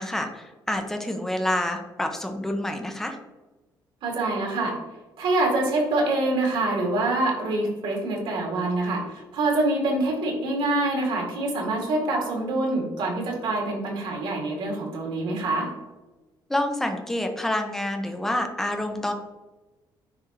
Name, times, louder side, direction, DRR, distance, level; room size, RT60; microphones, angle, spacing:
voice 1, 0.0-3.2 16.5-19.1, left 1 dB, 5° left, 4 dB, 0.7 m, -28 dB
voice 2, 4.0-4.8 5.2-15.7, right 2 dB, 80° right, 0 dB, 2.0 m, -25 dB
9.7 x 3.5 x 2.9 m, 1.1 s
cardioid pair, 145°, 8 cm